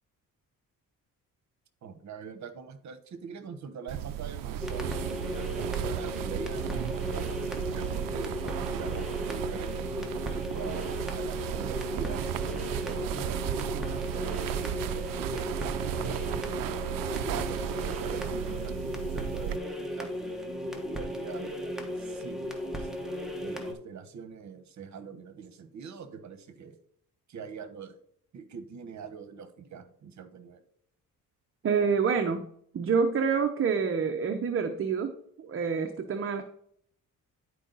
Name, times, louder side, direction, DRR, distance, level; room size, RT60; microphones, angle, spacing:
voice 1, 1.8-12.2 12.8-16.7 17.1-22.9 23.4-26.8 27.3-28.0 28.3-30.6, right 6 dB, 55° right, 10 dB, 1.2 m, -44 dB
sound 1, 3.9-19.6, right 12 dB, 75° right, 0.5 m, -34 dB
sound 2, 4.6-23.7, left 1 dB, ahead, 1.4 m, -36 dB
voice 2, 31.6-32.5 32.7-36.4, right 6 dB, 40° right, 6 dB, 0.8 m, -27 dB
10.5 x 4.7 x 4.0 m, 0.67 s
cardioid pair, 110°, 34 cm